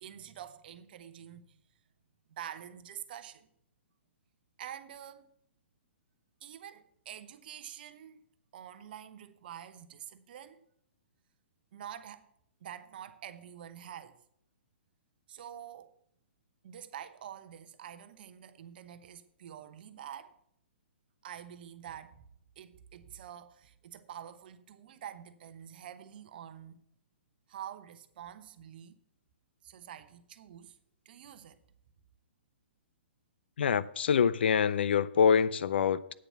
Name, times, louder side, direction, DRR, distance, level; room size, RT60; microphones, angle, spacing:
voice 1, 0.0-1.6 2.3-3.5 4.6-5.3 6.4-8.2 8.5-10.6 11.7-12.3 12.6-14.2 15.3-16.0 16.6-20.4 21.2-22.3 22.6-26.8 27.5-29.0 29.6-30.8 31.0-31.6, right 10 dB, 50° right, 0.9 m, -47 dB
voice 2, 33.6-36.1, left 7 dB, 65° left, 0.5 m, -25 dB
8.8 x 7.0 x 5.8 m
figure-of-eight pair, 125°, 6 cm